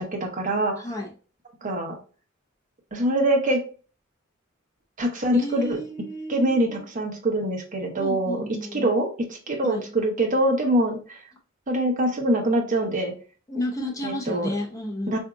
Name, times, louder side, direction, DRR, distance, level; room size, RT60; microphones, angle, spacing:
voice 1, 0.1-0.7 1.6-2.0 2.9-3.6 5.0-5.8 6.3-8.4 8.7-11.2 11.7-13.1 14.0-14.5 15.1-15.2, right 1 dB, 40° right, 1 dB, 0.9 m, -24 dB
voice 2, 0.8-1.1 5.3-6.8 7.9-8.9 9.6-9.9 13.5-15.2, left 1 dB, 15° left, -1 dB, 0.7 m, -32 dB
4.8 x 2.7 x 2.3 m, 0.37 s
head